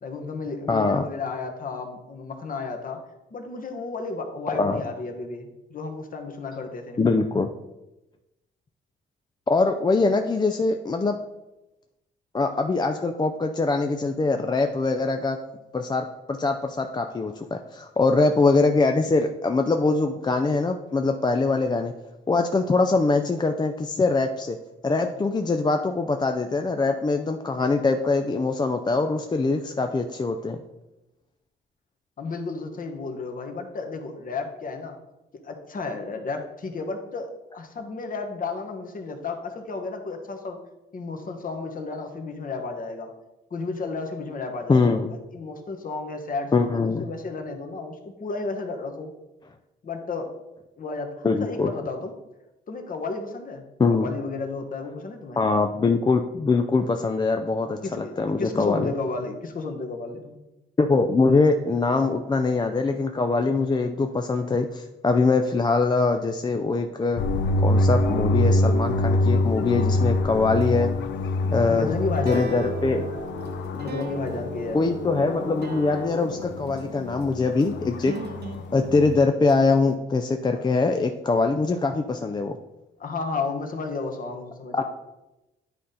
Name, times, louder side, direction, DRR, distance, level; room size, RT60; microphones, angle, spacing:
voice 1, 0.0-3.0 3.3-7.0 32.2-35.0 35.4-40.6 40.9-43.1 43.5-49.1 49.8-50.3 50.8-52.1 52.7-53.6 53.9-55.4 57.8-60.4 71.7-72.5 73.8-74.8 83.0-84.8, left 3 dB, 45° left, 4 dB, 1.2 m, -32 dB
voice 2, 0.7-1.1 4.5-4.8 7.0-7.5 9.5-11.2 12.3-15.4 15.7-21.9 22.3-24.6 24.8-30.6 44.7-45.1 46.5-47.0 51.2-51.7 53.8-54.1 55.4-58.9 60.8-67.2 67.6-70.9 71.5-71.9 72.3-73.0 74.7-78.1 78.7-82.6 84.7-84.8, left 3 dB, 20° left, 5 dB, 0.5 m, -23 dB
sound 1, 67.2-79.2, left 1 dB, 65° left, 0.6 m, -26 dB
sound 2, 70.2-80.0, right 3 dB, 55° right, 0.9 m, -38 dB
10.0 x 4.1 x 3.8 m, 0.98 s
cardioid pair, 90°, 20 cm